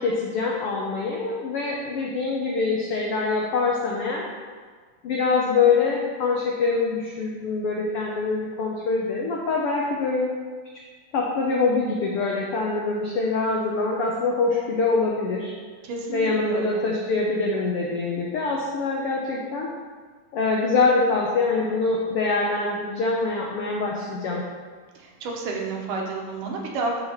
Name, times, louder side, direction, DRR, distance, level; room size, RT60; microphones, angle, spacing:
voice 1, 0.0-4.3 5.0-10.3 11.1-15.5 16.1-19.7 20.3-24.4, left 3 dB, 90° left, -2 dB, 1.2 m, -24 dB
voice 2, 15.8-16.8 24.9-27.0, right 3 dB, 85° right, -1 dB, 2.7 m, -30 dB
11.5 x 4.1 x 4.4 m, 1.5 s
omnidirectional pair, 3.6 m